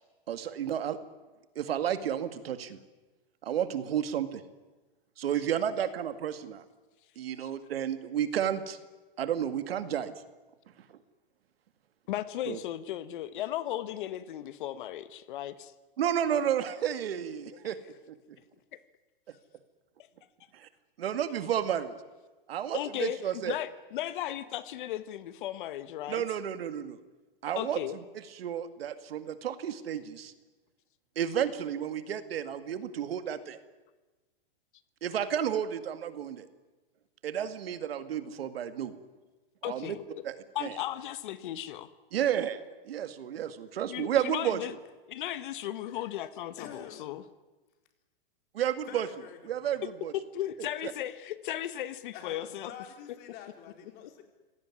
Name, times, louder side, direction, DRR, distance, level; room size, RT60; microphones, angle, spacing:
voice 1, 0.3-1.0 1.6-2.8 3.4-4.4 5.2-6.6 7.2-8.8 9.2-10.1 12.5-12.6 16.0-17.8 20.5-20.7 21.0-21.9 22.5-23.5 26.1-27.0 27.4-30.3 31.2-33.6 35.0-36.5 37.2-38.9 39.7-40.0 40.2-40.8 42.1-44.6 48.5-49.1 49.5-50.1 50.6-50.9, right 9 dB, 80° right, 11 dB, 2.2 m, -32 dB
voice 2, 12.1-15.7 22.7-23.2 23.4-26.2 27.5-28.0 39.6-40.0 40.5-41.9 43.9-44.7 45.1-47.2 50.1-52.7, left 12 dB, 55° left, 14 dB, 1.3 m, -36 dB
voice 3, 45.8-46.3 46.6-47.2 48.9-49.8 52.1-54.2, left 8 dB, 35° left, 5 dB, 4.1 m, -48 dB
25.5 x 17.5 x 9.8 m, 1.2 s
hypercardioid pair, 155°, 29 cm